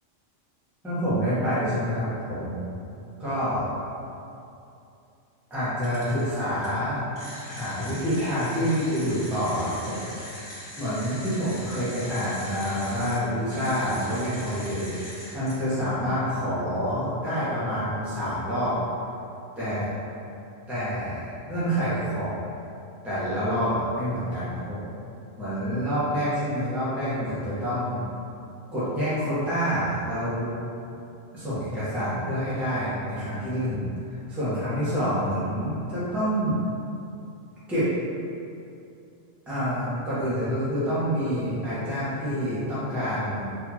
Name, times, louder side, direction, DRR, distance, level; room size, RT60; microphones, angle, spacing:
voice 1, 0.8-2.7 3.2-3.7 5.5-7.1 7.4-10.0 10.7-18.8 19.6-19.9 20.7-22.3 23.0-24.8 25.4-28.0 28.7-30.5 31.3-33.8 34.3-36.6 37.7-37.9 39.5-43.6, equal, ahead, -12 dB, 0.9 m, -27 dB
sound 1, 5.8-6.3 6.6-6.7 7.1-13.1 13.5-15.5, left 1 dB, 60° left, 1.9 m, -41 dB
4.2 x 2.7 x 2.9 m, 2.6 s
omnidirectional pair, 1.2 m